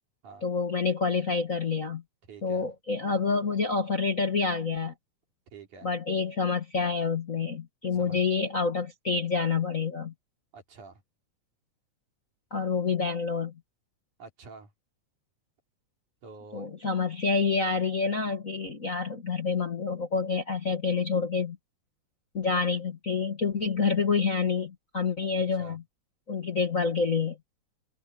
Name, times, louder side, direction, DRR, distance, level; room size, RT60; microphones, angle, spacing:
voice 1, 0.4-2.0 2.4-4.9 5.8-10.1 12.5-13.5 16.5-21.6 22.3-25.8 26.3-27.4, left 4 dB, 35° left, 1.4 m, -28 dB
voice 2, 2.3-2.7 5.5-5.9 7.9-8.2 10.5-11.0 14.2-14.7 16.2-16.7 25.3-25.8, right 4 dB, 75° right, 5.3 m, -48 dB
omnidirectional pair, 3.6 m